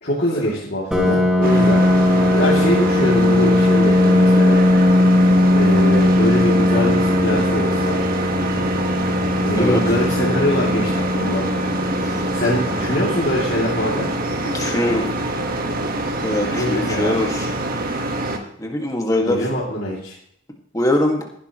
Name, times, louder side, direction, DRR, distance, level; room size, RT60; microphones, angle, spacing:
voice 1, 0.0-1.8 2.3-4.6 5.5-8.0 9.4-11.4 12.3-14.1 16.5-17.2 19.2-20.1, left 1 dB, 50° left, -6 dB, 3.0 m, -23 dB
Piano, 0.9-16.3, left 1 dB, 5° right, 2.0 m, -19 dB
sound 1, 1.4-18.4, right 2 dB, 45° right, 1.7 m, -25 dB
voice 2, 14.4-15.1 16.2-17.5 18.6-19.5 20.7-21.3, left 1 dB, 15° left, 1 dB, 2.1 m, -22 dB
19.0 x 11.5 x 3.2 m, 0.67 s
head